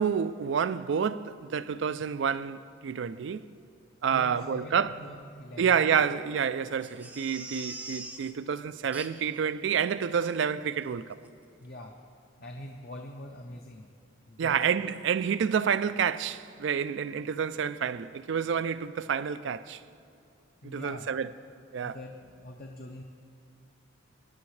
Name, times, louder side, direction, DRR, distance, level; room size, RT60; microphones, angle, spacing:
voice 1, 0.0-3.5 4.0-4.9 5.6-11.2 14.4-19.8 20.6-21.3 21.7-22.0, right 7 dB, 60° right, 0.3 m, -29 dB
voice 2, 4.1-5.8 11.6-11.9 12.4-13.9 14.3-14.6 20.6-21.1 21.8-23.0, left 1 dB, 50° left, 0.7 m, -43 dB
Crying sobbing, 6.8-8.3 8.9-9.4 9.8-9.9 10.2-10.3 10.8-11.0 11.2-11.3, right 2 dB, 5° right, 0.5 m, -43 dB
21.0 x 9.7 x 3.2 m
head